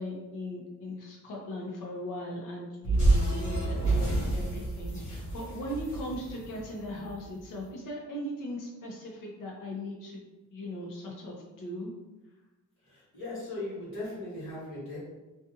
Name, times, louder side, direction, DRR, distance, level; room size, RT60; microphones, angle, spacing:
voice 1, 0.0-10.2 10.5-11.9, equal, 85° left, -1 dB, 0.8 m, -38 dB
sound 1, 2.8-7.2, right 2 dB, 60° left, 1.0 m, -28 dB
voice 2, 12.8-15.0, left 2 dB, 45° left, -8 dB, 1.4 m, -38 dB
2.5 x 2.4 x 2.7 m, 1.1 s
cardioid pair, 180°, 31 cm